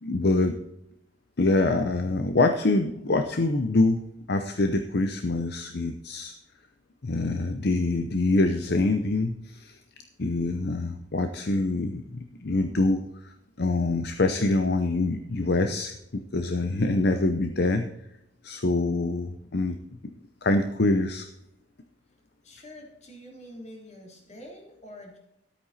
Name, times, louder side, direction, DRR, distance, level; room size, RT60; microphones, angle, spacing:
voice 1, 0.0-0.6 1.4-6.3 7.0-9.8 10.2-17.9 18.4-19.8 20.4-21.3, left 2 dB, 55° left, 7 dB, 0.7 m, -25 dB
voice 2, 22.4-25.2, equal, 35° left, 0 dB, 3.3 m, -46 dB
12.5 x 8.9 x 4.2 m, 0.83 s
head